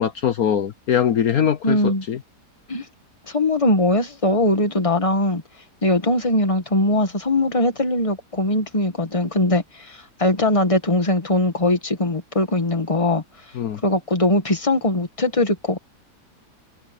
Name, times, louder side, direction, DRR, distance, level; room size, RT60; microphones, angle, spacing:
voice 1, 0.0-1.8 2.1-2.2 13.6-13.8, left 9 dB, 60° left, 1.3 m, -21 dB
voice 2, 1.6-2.1 2.7-2.9 3.3-5.4 5.8-13.2 13.8-15.8, left 1 dB, 20° left, 2.0 m, -21 dB
omnidirectional pair, 1.8 m